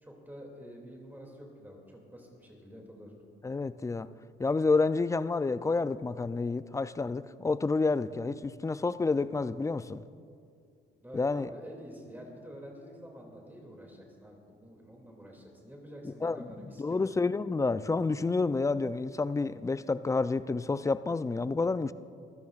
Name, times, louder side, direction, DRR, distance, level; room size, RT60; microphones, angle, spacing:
voice 1, 0.0-3.1 11.0-17.1, equal, 10° right, -1 dB, 2.4 m, -48 dB
voice 2, 3.4-4.1 4.4-10.0 11.1-11.5 16.0-16.5 16.8-21.9, left 3 dB, 15° left, 14 dB, 0.3 m, -29 dB
23.0 x 14.0 x 2.4 m, 2.4 s
cardioid pair, 90°, 20 cm